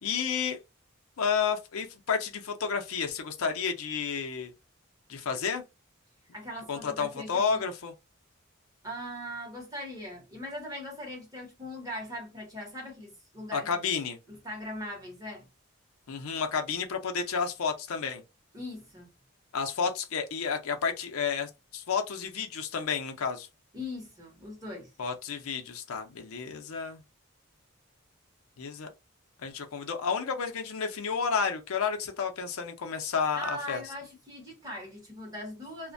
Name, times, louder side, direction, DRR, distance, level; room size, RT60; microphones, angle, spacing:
voice 1, 0.0-0.6 1.2-4.5 5.1-5.6 6.7-7.9 13.5-14.2 16.1-18.2 19.5-23.5 25.0-27.0 28.6-28.9 29.4-33.8, left 6 dB, 85° left, 0.5 m, -31 dB
voice 2, 6.3-7.6 8.8-13.7 14.3-15.5 18.5-19.1 23.7-24.9 33.3-35.9, left 1 dB, 15° right, 1.0 m, -40 dB
2.4 x 2.1 x 2.5 m
head